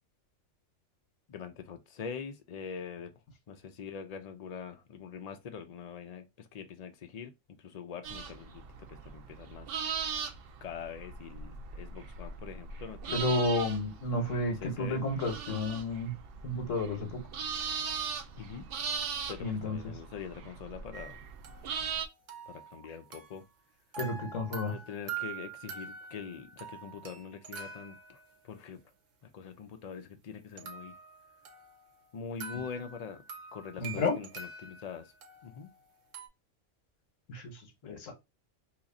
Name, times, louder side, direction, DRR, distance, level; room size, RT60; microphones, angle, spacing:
voice 1, 1.3-3.1 3.5-7.3 7.6-9.7 10.6-13.4 14.6-15.0 18.4-18.7 19.3-21.2 22.5-23.4 24.6-28.2 28.4-28.8 29.2-30.9 32.1-33.2 33.5-35.1 35.4-35.7 37.8-38.0, left 7 dB, 55° left, 0.4 m, -43 dB
sound 1, 8.0-22.1, right 6 dB, 60° right, 0.7 m, -39 dB
voice 2, 13.1-16.1 16.4-17.2 19.4-19.8 24.0-24.7 33.8-34.2 37.3-38.1, left 2 dB, 85° left, 1.3 m, -31 dB
sound 2, 20.9-23.6 23.9-28.6 30.6-36.3, right 6 dB, 80° right, 1.1 m, -45 dB
2.9 x 2.4 x 3.8 m
omnidirectional pair, 1.3 m